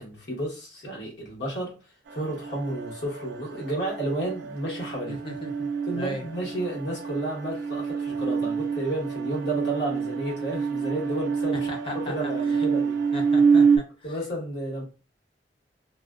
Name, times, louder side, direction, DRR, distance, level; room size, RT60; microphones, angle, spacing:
voice 1, 0.0-1.8 2.1-5.2 5.9-11.7 12.0-13.0 14.0-14.8, right 1 dB, 85° left, 1.2 m, -32 dB
sound 1, 2.1-13.8, right 5 dB, 85° right, 0.4 m, -27 dB
voice 2, 5.1-5.7 5.9-6.2 11.7-12.1 13.1-13.8, equal, 30° left, 0.6 m, -35 dB
2.4 x 2.2 x 2.3 m
head